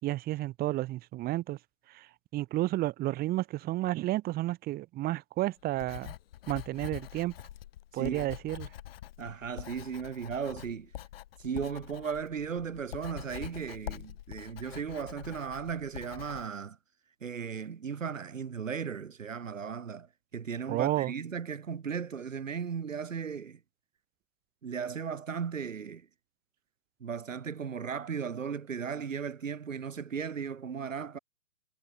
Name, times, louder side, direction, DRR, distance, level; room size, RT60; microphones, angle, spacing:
voice 1, 0.0-1.6 1.9-2.1 2.3-6.1 6.5-7.3 7.9-8.7 20.7-21.1, right 16 dB, 20° right, 3.3 m, -31 dB
Writing, 5.7-16.5, left 13 dB, 45° left, 4.2 m, -45 dB
voice 2, 7.9-8.3 9.2-10.9 11.4-16.8 17.2-23.6 24.6-26.1 27.0-31.2, right 6 dB, 70° right, 2.5 m, -36 dB
figure-of-eight pair, 125°, 41 cm